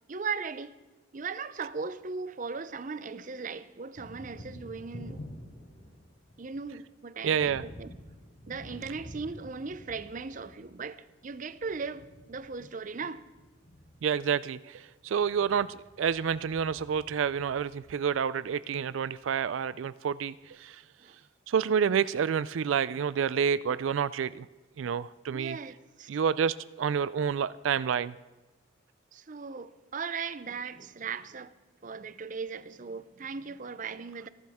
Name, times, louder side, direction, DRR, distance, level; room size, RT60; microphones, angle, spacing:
voice 1, 0.1-0.7 1.1-5.2 6.4-7.9 8.5-13.3 21.0-21.2 25.3-26.2 29.1-31.5 31.8-34.3, right 5 dB, 40° right, 0.6 m, -38 dB
Thunder, 1.7-2.9 3.2-18.4, equal, 65° left, 3.5 m, -49 dB
voice 2, 7.2-7.6 14.0-20.8 21.5-24.5 24.8-25.6 26.1-28.2, right 7 dB, 90° right, 0.4 m, -29 dB
27.0 x 12.0 x 3.6 m
head